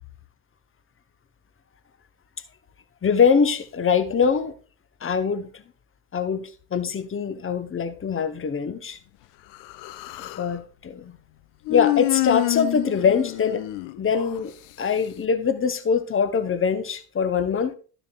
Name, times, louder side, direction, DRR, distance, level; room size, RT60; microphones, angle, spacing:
voice 1, 3.0-4.5 5.0-5.6 6.1-9.0 10.4-11.2 11.7-13.6 14.0-14.5 14.8-17.8, left 6 dB, 25° left, 0.9 m, -23 dB
Human voice, 9.5-10.5 11.7-14.4, left 19 dB, 65° left, 0.6 m, -27 dB
12.0 x 7.0 x 2.3 m
figure-of-eight pair, 45°, 48 cm